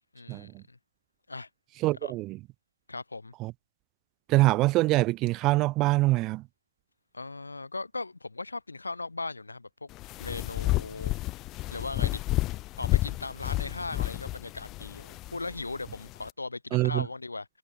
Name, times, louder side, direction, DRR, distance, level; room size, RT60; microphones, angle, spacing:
voice 1, 0.1-0.8 1.3-1.5 1.9-2.1 2.9-3.3 7.1-9.9 10.2-11.1 11.7-12.2 12.8-17.5, left 3 dB, 80° left, 6.6 m, -38 dB
voice 2, 1.8-2.4 3.4-3.5 4.3-6.4 16.7-17.0, right 19 dB, 20° right, 0.3 m, -24 dB
sound 1, 9.9-16.3, left 18 dB, 20° left, 0.9 m, -31 dB
figure-of-eight pair, 140°, 0 cm